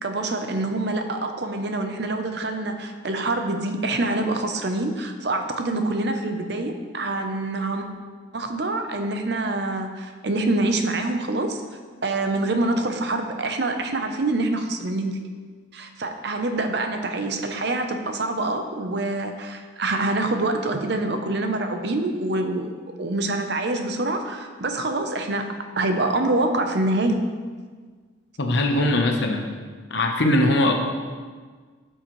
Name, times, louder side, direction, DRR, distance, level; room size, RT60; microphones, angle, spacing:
voice 1, 0.0-7.9 8.3-11.6 12.0-15.2 15.7-25.5 25.8-27.2, right 2 dB, 55° right, 6 dB, 0.7 m, -25 dB
voice 2, 28.4-29.5 29.9-30.7, left 1 dB, 60° left, 4 dB, 0.9 m, -20 dB
12.0 x 6.4 x 3.2 m, 1.5 s
head